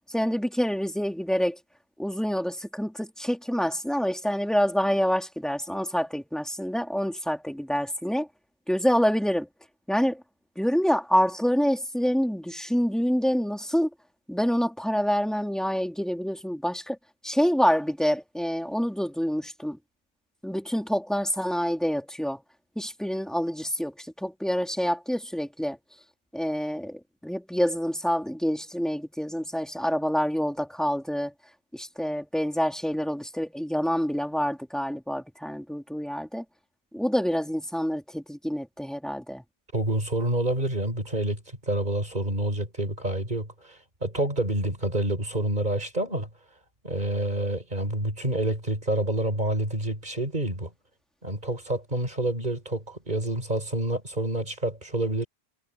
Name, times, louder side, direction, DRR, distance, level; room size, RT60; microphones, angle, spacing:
voice 1, 0.1-1.6 2.0-8.3 8.7-9.5 9.9-10.2 10.5-13.9 14.3-17.0 17.2-19.8 20.4-22.4 22.7-25.8 26.3-31.3 31.7-36.4 36.9-39.4, equal, ahead, 3.3 m, -27 dB
voice 2, 39.7-41.4 41.7-46.3 46.8-50.7 51.2-55.3, right 1 dB, 45° right, 5.7 m, -28 dB
omnidirectional pair, 1.1 m